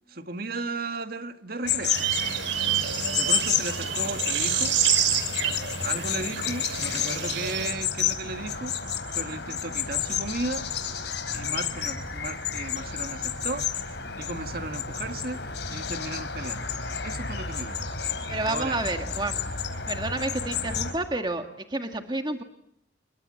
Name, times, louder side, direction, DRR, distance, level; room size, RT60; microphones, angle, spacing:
voice 1, 0.1-2.0 3.1-4.8 5.8-8.7 9.1-10.7 11.3-13.7 14.2-16.7 17.0-17.9 18.4-18.8, right 2 dB, 50° right, 2.0 m, -35 dB
sound 1, 1.6-20.9, left 7 dB, 65° left, 4.6 m, -31 dB
sound 2, 1.9-7.7, right 9 dB, 90° right, 4.4 m, -28 dB
voice 2, 18.3-19.4 19.9-22.4, right 2 dB, 25° right, 1.9 m, -30 dB
29.5 x 23.5 x 7.7 m
head